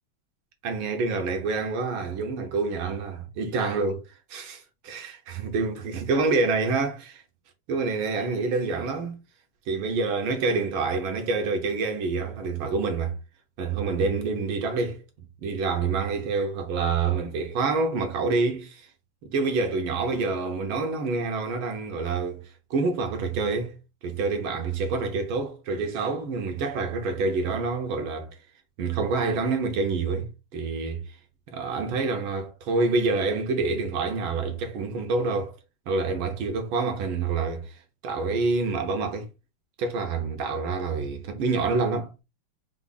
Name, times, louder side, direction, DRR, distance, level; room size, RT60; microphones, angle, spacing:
voice 1, 0.6-4.0 4.3-7.2 7.7-9.2 9.7-13.2 13.6-15.0 15.4-18.9 19.2-22.4 22.7-23.7 24.0-28.3 28.8-31.0 31.5-35.6 35.9-37.7 38.0-39.3 39.8-42.2, right 4 dB, 80° right, 1.7 m, -27 dB
4.7 x 2.0 x 3.7 m
omnidirectional pair, 2.3 m